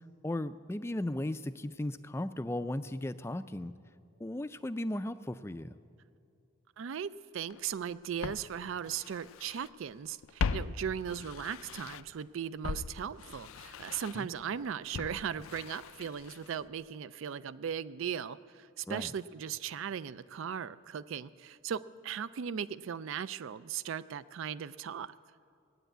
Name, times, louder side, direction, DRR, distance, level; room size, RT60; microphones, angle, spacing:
voice 1, 0.2-3.7 4.2-5.8 14.1-14.3 18.9-19.1, left 1 dB, 10° left, 12 dB, 0.3 m, -36 dB
voice 2, 6.8-25.1, right 8 dB, 70° right, 17 dB, 0.4 m, -38 dB
Walk footsteps, 7.5-7.6 8.2-9.7 10.0-12.2 12.6-16.7 16.9-17.0, left 5 dB, 80° left, 0.4 m, -39 dB
17.5 x 10.0 x 8.0 m, 2.5 s
head